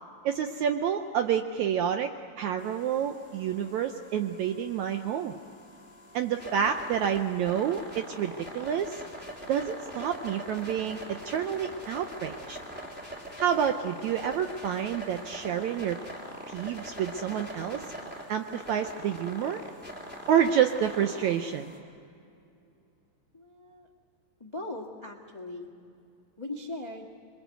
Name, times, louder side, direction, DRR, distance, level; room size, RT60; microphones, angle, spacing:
voice 1, 0.2-2.1 2.4-5.3 6.1-9.0 9.5-12.6 13.4-16.0 16.5-17.9 18.3-19.6 20.3-21.7, right 8 dB, 75° right, 7 dB, 1.7 m, -28 dB
sound 1, 2.6-21.8, equal, 5° right, 2.8 m, -43 dB
voice 2, 23.3-23.9 24.4-25.7 26.4-27.1, left 2 dB, 30° left, 1 dB, 0.5 m, -39 dB
26.5 x 23.0 x 8.0 m, 2.6 s
omnidirectional pair, 4.1 m